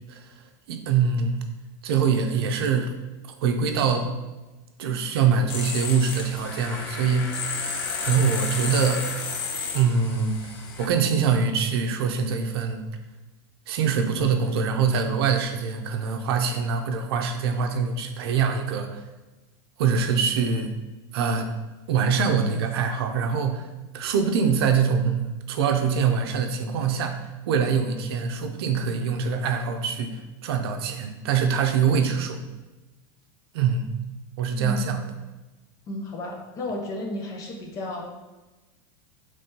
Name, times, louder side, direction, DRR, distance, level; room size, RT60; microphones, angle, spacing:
voice 1, 0.0-1.4 1.8-2.9 3.2-4.1 4.8-7.6 8.0-9.1 9.7-10.5 10.8-12.9 13.7-19.1 19.8-20.7 21.1-21.5 21.9-23.7 23.9-32.4 33.5-33.8 34.4-35.0, right 6 dB, 80° right, 5 dB, 0.6 m, -24 dB
sound 1, 5.5-10.9, left 5 dB, 70° left, 0.8 m, -32 dB
voice 2, 34.6-34.9 35.9-38.0, left 1 dB, 25° left, 1 dB, 0.6 m, -32 dB
5.2 x 3.2 x 2.8 m, 1.1 s
supercardioid pair, 165°, 13 cm